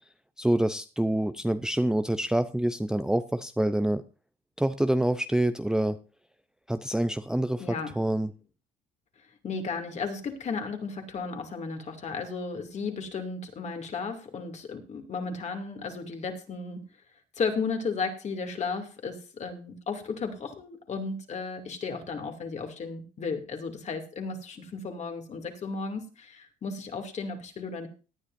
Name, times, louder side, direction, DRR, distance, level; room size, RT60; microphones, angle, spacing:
voice 1, 0.4-4.0 4.6-6.0 6.7-8.3, right 1 dB, 5° right, 10 dB, 0.5 m, -26 dB
voice 2, 7.6-7.9 9.4-16.8 17.4-27.9, left 4 dB, 40° left, 5 dB, 2.5 m, -34 dB
18.0 x 10.0 x 2.6 m, 0.33 s
cardioid pair, 110°, 17 cm